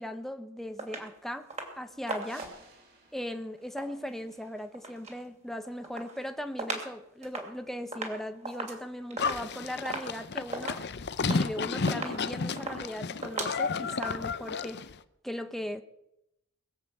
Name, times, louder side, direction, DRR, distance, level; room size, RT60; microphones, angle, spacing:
voice 1, 0.0-1.5 1.8-2.5 3.1-10.8 11.2-14.8 15.2-15.8, equal, ahead, 8 dB, 0.9 m, -38 dB
sound 1, 0.8-1.1 1.5-1.8 2.1-2.7 3.6-5.2 5.6-6.9 7.2-14.1, right 3 dB, 35° right, 2.9 m, -39 dB
sound 2, 2.1-4.8, right 2 dB, 50° right, 3.9 m, -57 dB
Livestock farm animals working animals, 9.2-14.9, left 4 dB, 55° left, 0.7 m, -32 dB
22.0 x 7.6 x 7.7 m, 0.84 s
head